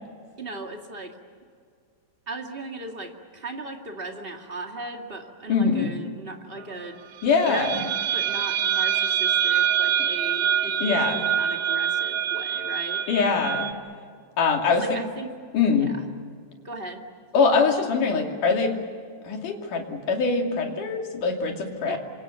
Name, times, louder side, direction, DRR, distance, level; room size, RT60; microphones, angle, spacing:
voice 1, 0.4-1.2 2.2-7.0 7.4-13.0 14.7-15.3 15.7-16.0 16.6-17.1 21.9-22.0, right 2 dB, 25° right, 2 dB, 1.2 m, -37 dB
voice 2, 5.5-5.9 7.2-7.8 10.0-10.1 10.8-11.2 13.1-13.7 14.4-14.8 15.5-15.9 17.3-18.7 19.2-22.0, left 4 dB, 55° left, 2 dB, 3.9 m, -23 dB
sound 1, 7.2-13.7, right 9 dB, 75° right, 1.8 m, -25 dB
28.0 x 26.0 x 7.1 m, 2.1 s
omnidirectional pair, 4.8 m